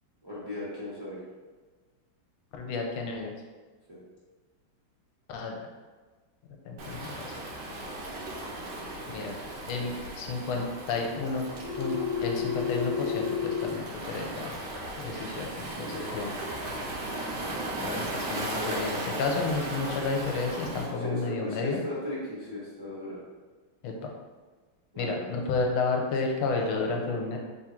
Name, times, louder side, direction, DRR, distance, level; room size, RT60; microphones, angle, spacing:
voice 1, 0.2-1.2 3.9-4.0 15.9-16.2 18.5-18.9 21.0-23.2 24.9-25.3 26.5-26.9, left 1 dB, 40° right, -9 dB, 0.3 m, -37 dB
voice 2, 2.5-3.3 5.3-5.7 6.6-7.3 9.1-9.3 9.7-11.4 11.7-14.5 15.0-16.3 17.8-21.8 23.8-24.1 25.0-27.4, left 3 dB, 85° left, 1 dB, 1.5 m, -31 dB
Waves surf, 6.8-20.9, right 1 dB, 80° right, 1.5 m, -37 dB
Telephone, 11.6-13.6, left 7 dB, 40° left, 1.4 m, -30 dB
3.7 x 2.5 x 4.3 m, 1.4 s
omnidirectional pair, 2.3 m